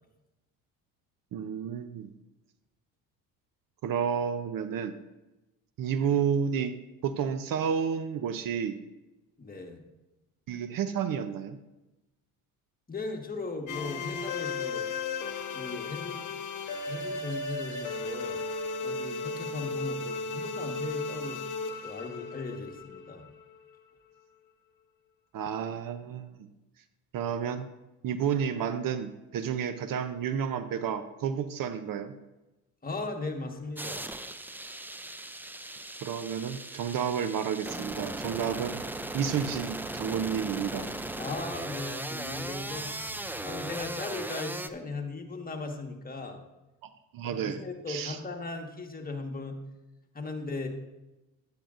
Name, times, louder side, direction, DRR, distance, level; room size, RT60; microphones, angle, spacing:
voice 1, 1.3-2.1 3.8-5.0 5.8-6.7 7.0-8.8 10.5-11.6 25.3-26.5 27.1-27.7 28.0-32.1 36.0-38.8 39.1-40.9 47.1-47.6 47.9-48.2, right 7 dB, 50° right, 11 dB, 0.7 m, -31 dB
voice 2, 9.4-9.8 12.9-14.8 15.5-16.3 16.9-18.4 18.8-21.4 21.8-23.3 32.8-34.0 41.2-46.4 47.2-49.6 50.1-50.7, left 3 dB, 20° left, 3 dB, 1.5 m, -38 dB
sound 1, 13.7-23.6, left 3 dB, 45° left, 1.2 m, -35 dB
sound 2, 33.8-44.7, right 1 dB, 5° right, 0.4 m, -38 dB
sound 3, 37.7-43.9, equal, 90° right, 3.6 m, -51 dB
10.5 x 9.9 x 2.5 m, 1.0 s
supercardioid pair, 75°, 42 cm